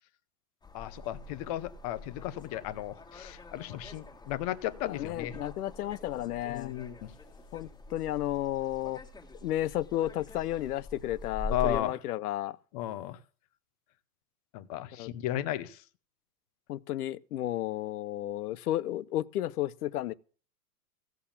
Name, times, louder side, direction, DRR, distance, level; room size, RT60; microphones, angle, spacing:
sound 1, 0.6-11.8, left 2 dB, 10° left, 1.8 m, -44 dB
voice 1, 0.7-5.4 6.5-7.1 11.5-12.0 12.7-13.2 14.5-15.8, left 13 dB, 25° left, 0.6 m, -34 dB
voice 2, 4.9-6.7 7.5-9.0 9.4-12.6 15.0-15.1 16.7-20.1, left 13 dB, 70° left, 0.9 m, -33 dB
16.0 x 7.0 x 7.2 m
supercardioid pair, 165°, 47 cm